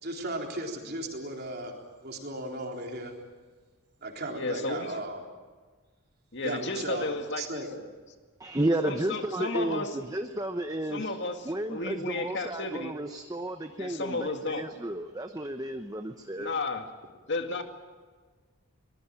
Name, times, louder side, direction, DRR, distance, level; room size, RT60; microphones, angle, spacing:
voice 1, 0.0-1.7 2.0-3.1 4.0-5.2 6.4-7.1 7.4-7.8, right 1 dB, 45° right, 2 dB, 3.9 m, -36 dB
voice 2, 4.3-4.9 6.3-7.6 8.8-10.0 10.9-12.9 13.8-14.7 16.4-16.8 17.3-17.6, left 2 dB, 55° left, 5 dB, 2.2 m, -33 dB
voice 3, 8.4-11.2 11.4-16.5, right 1 dB, 15° right, 7 dB, 0.9 m, -32 dB
23.5 x 20.0 x 9.0 m, 1.4 s
head